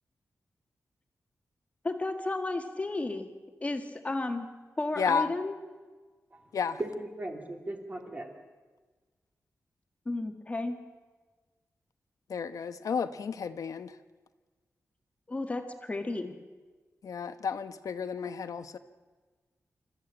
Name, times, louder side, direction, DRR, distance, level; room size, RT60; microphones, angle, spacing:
voice 1, 1.8-3.3 3.6-4.5 4.8-5.5 10.1-10.8 15.3-16.4, left 2 dB, 25° left, 6 dB, 1.8 m, -33 dB
voice 2, 5.0-5.3 6.5-6.8 12.3-13.9 17.0-18.8, left 6 dB, 80° left, 10 dB, 1.0 m, -32 dB
voice 3, 6.8-8.3, right 1 dB, 25° right, 3 dB, 2.7 m, -37 dB
26.0 x 14.0 x 8.9 m, 1.4 s
wide cardioid pair, 170°, 6 cm